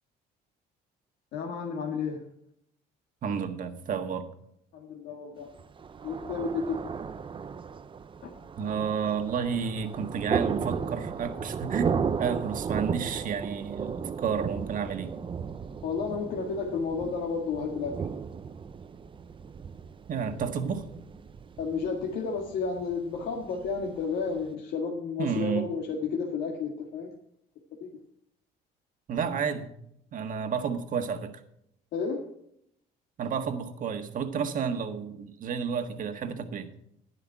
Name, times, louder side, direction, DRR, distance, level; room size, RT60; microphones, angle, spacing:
voice 1, 1.3-2.2 4.7-5.5 6.0-6.8 8.2-8.3 15.8-18.0 21.6-27.1 27.8-28.0 31.9-32.3, left 5 dB, 75° left, 0 dB, 1.9 m, -32 dB
voice 2, 3.2-4.2 8.6-11.9 12.2-15.1 20.1-20.8 25.2-25.7 29.1-29.7 30.1-31.4 33.2-36.7, right 6 dB, 55° right, 6 dB, 1.6 m, -31 dB
Thunder, 5.5-24.5, right 6 dB, 30° right, 0.6 m, -35 dB
11.0 x 10.5 x 4.7 m, 0.71 s
cardioid pair, 110°, 17 cm